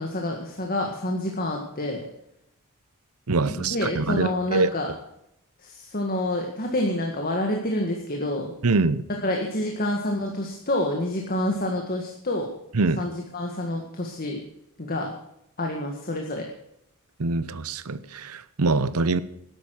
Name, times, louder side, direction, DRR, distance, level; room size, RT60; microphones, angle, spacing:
voice 1, 0.0-2.0 3.5-4.9 5.6-8.5 9.2-12.5 13.0-14.4 14.8-15.1 15.6-16.5, left 1 dB, 45° left, 1.8 m, -28 dB
voice 2, 3.3-4.7 8.6-9.0 12.7-13.0 17.2-19.2, right 3 dB, 85° right, 0.8 m, -24 dB
13.0 x 11.0 x 6.5 m
head